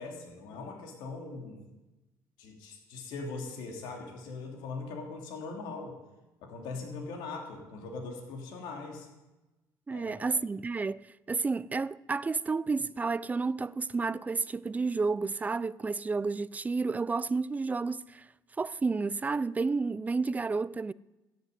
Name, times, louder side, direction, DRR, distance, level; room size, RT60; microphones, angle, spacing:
voice 1, 0.0-1.7 2.4-6.0 6.4-9.1 9.9-10.4, left 3 dB, 80° left, 3.0 m, -41 dB
voice 2, 9.9-18.3 18.6-20.9, right 4 dB, 20° right, 0.5 m, -31 dB
14.5 x 7.5 x 9.8 m
cardioid pair, 105°, 8 cm